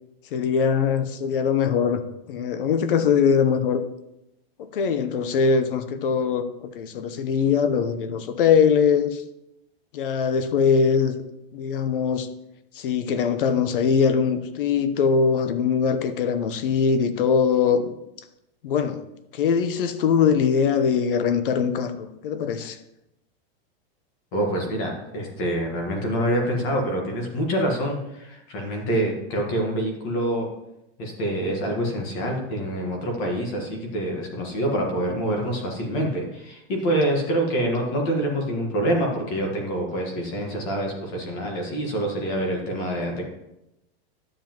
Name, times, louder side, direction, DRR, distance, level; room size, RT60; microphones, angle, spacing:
voice 1, 0.3-2.0 2.3-3.8 4.6-6.4 6.7-9.2 9.9-11.2 11.5-12.3 12.7-17.9 18.6-19.0 19.3-22.8, left 6 dB, 60° left, 10 dB, 0.9 m, -22 dB
voice 2, 24.3-30.5 31.0-43.2, right 1 dB, 30° left, 1 dB, 1.4 m, -26 dB
11.0 x 7.5 x 3.0 m, 0.88 s
supercardioid pair, 180°, 31 cm